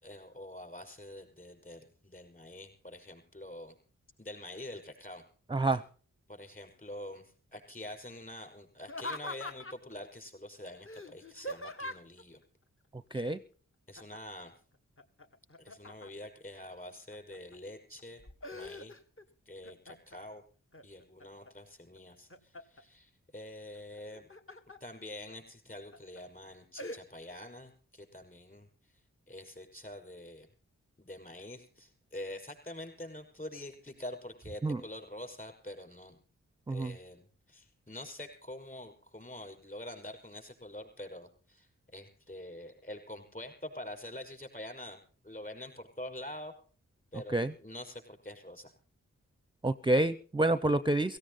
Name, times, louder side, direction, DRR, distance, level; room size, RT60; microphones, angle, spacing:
voice 1, 0.0-3.8 4.2-5.2 6.3-7.2 7.5-12.4 13.2-13.4 13.9-14.5 15.6-18.2 18.5-19.0 19.5-20.4 20.8-24.3 24.8-29.0 29.3-30.5 31.0-36.2 36.7-46.5 47.1-48.7, left 1 dB, 25° left, 4 dB, 5.4 m, -46 dB
voice 2, 5.5-5.8 13.1-13.4 34.6-34.8 36.7-36.9 47.3-47.5 49.6-51.2, right 2 dB, 15° right, 14 dB, 0.6 m, -28 dB
Laughter, 8.8-9.9 10.9-12.2 14.0-14.4 14.7-16.3 16.9-17.6 18.0-19.2 19.6-20.2 20.7-21.5 22.0-22.8 24.0-24.8 25.3-25.4 25.9-26.2 26.8-27.0, left 1 dB, 40° left, 1.5 m, -43 dB
16.5 x 16.0 x 4.1 m, 0.40 s
cardioid pair, 45°, 32 cm